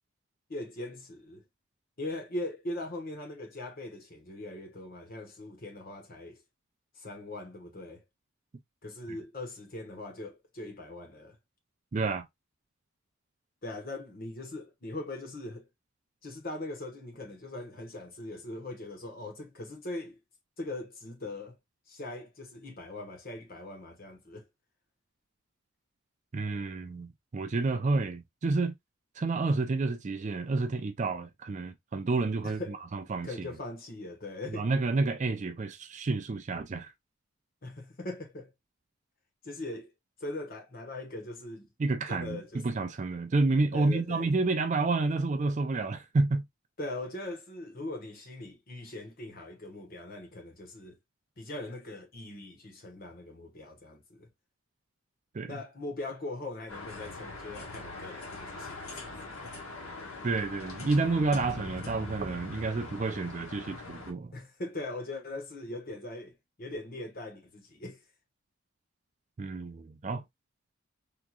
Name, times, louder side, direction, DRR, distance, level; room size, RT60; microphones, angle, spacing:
voice 1, 0.5-1.4 2.0-6.4 6.9-8.0 8.8-11.4 13.6-15.7 16.2-20.2 20.6-21.6 21.9-24.5 32.4-32.8 33.2-34.7 37.6-38.5 39.4-39.9 40.2-41.7 42.1-42.6 43.7-44.3 46.8-51.0 51.4-54.3 55.4-59.6 64.3-68.0, left 2 dB, 45° left, 1.1 m, -40 dB
voice 2, 11.9-12.3 26.3-28.8 29.2-33.5 34.5-36.9 41.8-46.4 55.3-55.6 60.2-64.3 69.4-70.2, right 3 dB, 35° right, 0.4 m, -30 dB
sound 1, 56.7-64.1, left 2 dB, 80° left, 1.4 m, -42 dB
3.6 x 3.0 x 2.3 m
head